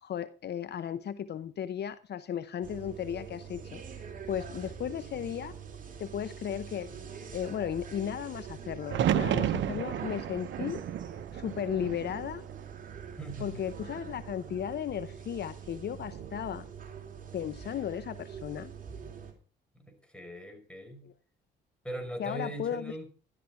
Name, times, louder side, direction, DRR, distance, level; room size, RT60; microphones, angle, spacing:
voice 1, 0.0-3.8 4.3-5.5 6.0-6.9 7.3-10.8 11.3-12.4 13.4-16.7 17.3-18.7 21.0-21.1 22.2-22.9, left 9 dB, 55° left, 14 dB, 0.8 m, -35 dB
sound 1, 2.6-19.3, right 7 dB, 45° right, 3.5 m, -44 dB
sound 2, 8.9-12.9 13.3-14.1 15.9-16.4, right 10 dB, 70° right, 0.9 m, -32 dB
voice 2, 13.2-13.8 19.7-21.1 21.8-23.1, right 1 dB, 5° left, 4 dB, 5.0 m, -40 dB
13.0 x 12.0 x 4.7 m, 0.38 s
cardioid pair, 90°, 20 cm